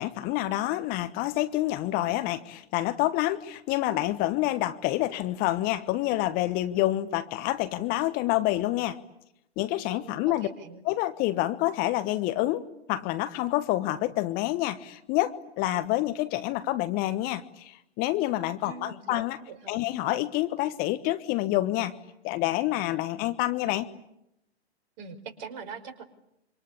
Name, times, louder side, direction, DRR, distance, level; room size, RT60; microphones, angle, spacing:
voice 1, 0.0-9.0 9.6-10.5 10.8-12.6 12.9-19.4 19.7-21.9 22.2-23.9, left 16 dB, 25° left, 12 dB, 1.2 m, -28 dB
voice 2, 10.4-10.8 18.6-19.2 19.5-19.8 25.0-26.0, right 5 dB, 40° right, 8 dB, 5.0 m, -42 dB
27.0 x 25.5 x 8.6 m, 0.81 s
figure-of-eight pair, 120°, 33 cm